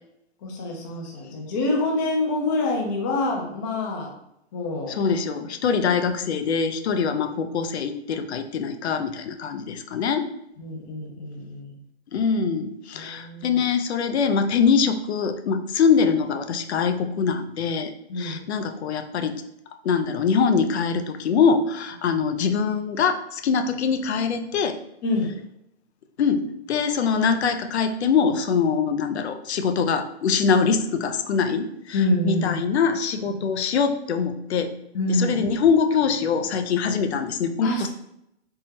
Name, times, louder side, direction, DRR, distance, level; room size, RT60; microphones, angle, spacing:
voice 1, 0.4-4.1 4.5-4.9 10.6-11.8 12.9-13.6 18.1-18.4 25.0-25.3 31.9-32.6 34.9-35.3 37.6-37.9, left 2 dB, 20° left, 1 dB, 0.3 m, -26 dB
voice 2, 4.9-10.3 12.1-17.9 18.2-19.4 19.8-24.8 26.2-34.7 35.1-37.9, left 6 dB, 80° left, 8 dB, 0.5 m, -23 dB
3.6 x 2.1 x 2.8 m, 0.79 s
hypercardioid pair, 135°, 32 cm